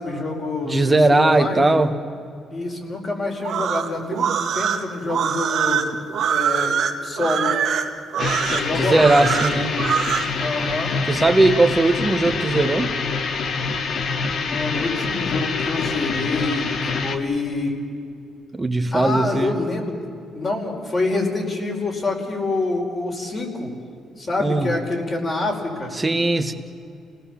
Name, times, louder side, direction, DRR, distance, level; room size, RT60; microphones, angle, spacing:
voice 1, 0.0-1.7 2.5-5.8 6.3-6.8 7.0-7.5 8.5-9.3 10.4-10.9 14.5-16.7 17.0-17.8 18.9-20.0 20.3-23.7 24.2-25.9, left 2 dB, 40° left, 0 dB, 5.1 m, -26 dB
voice 2, 0.6-2.0 8.8-9.8 11.1-12.9 18.5-19.5 24.4-24.7 25.9-26.5, right 2 dB, 15° right, 7 dB, 1.5 m, -18 dB
sound 1, 3.4-10.3, right 7 dB, 65° right, 1.8 m, -23 dB
sound 2, 8.2-17.2, left 4 dB, 60° left, 1.6 m, -25 dB
29.5 x 18.5 x 7.2 m, 2.4 s
cardioid pair, 90°, 0 cm